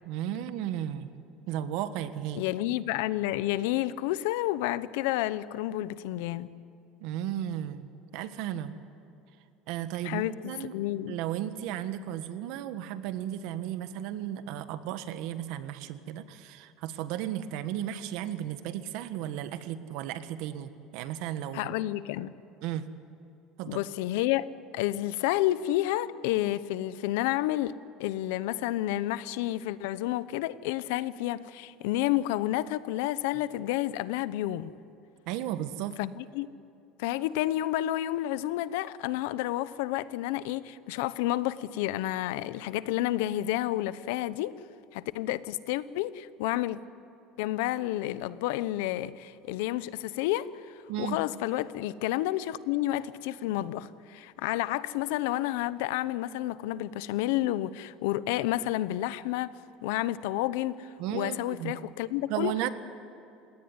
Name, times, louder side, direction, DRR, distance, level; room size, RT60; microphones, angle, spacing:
voice 1, 0.0-1.1 1.5-2.4 7.0-8.7 9.7-10.7 11.1-21.7 22.6-22.9 23.6-23.8 35.3-36.0 50.9-51.2 61.0-61.7 62.3-62.7, right 11 dB, 65° right, 1.5 m, -34 dB
voice 2, 2.3-6.5 10.0-11.2 21.5-22.3 23.7-27.7 28.0-34.7 36.0-36.5 37.0-44.5 44.9-46.8 47.4-59.5 59.8-62.5, left 15 dB, 85° left, 0.9 m, -30 dB
29.0 x 17.5 x 9.8 m
cardioid pair, 160°, 0 cm